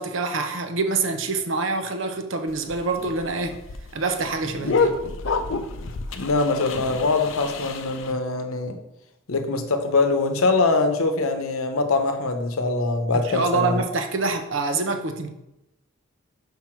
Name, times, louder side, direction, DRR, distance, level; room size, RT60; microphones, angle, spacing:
voice 1, 0.0-3.6 3.9-5.0 13.1-15.3, right 3 dB, 65° right, 0.8 m, -26 dB
sound 1, 2.5-8.1, left 4 dB, 65° left, 0.6 m, -28 dB
voice 2, 6.1-8.8 9.3-13.8, left 3 dB, 90° left, 0.9 m, -23 dB
5.9 x 5.5 x 4.5 m
head